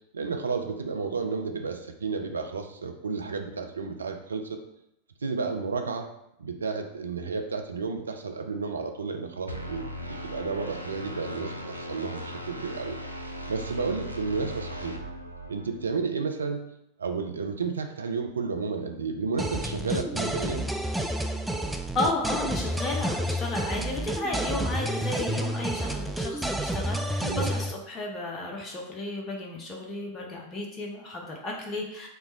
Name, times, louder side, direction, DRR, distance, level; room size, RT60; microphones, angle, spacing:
voice 1, 0.1-4.6 5.2-6.1 6.4-13.0 13.5-15.0 15.5-16.6 17.0-20.7 27.2-27.5, right 4 dB, 75° right, 5 dB, 0.5 m, -32 dB
sound 1, 9.5-16.0, equal, 90° left, 0.4 m, -38 dB
sound 2, 19.4-27.7, right 1 dB, 5° right, 0.3 m, -30 dB
voice 2, 21.9-32.1, left 2 dB, 25° left, 0 dB, 0.7 m, -33 dB
4.4 x 2.2 x 4.2 m, 0.79 s
figure-of-eight pair, 90°, 0 cm